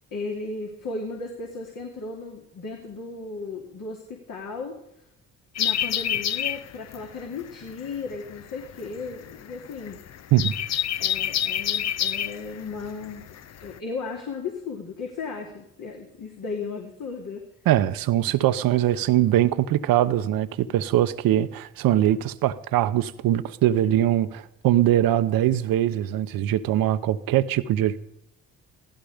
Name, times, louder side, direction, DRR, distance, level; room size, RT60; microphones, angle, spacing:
voice 1, 0.1-4.7 5.6-10.0 11.0-17.4, left 4 dB, 65° left, 3.0 m, -35 dB
sound 1, 5.5-13.8, left 10 dB, 50° left, 0.6 m, -28 dB
voice 2, 17.7-28.0, right 12 dB, 75° right, 0.9 m, -22 dB
16.0 x 14.5 x 5.1 m
supercardioid pair, 60°, 35 cm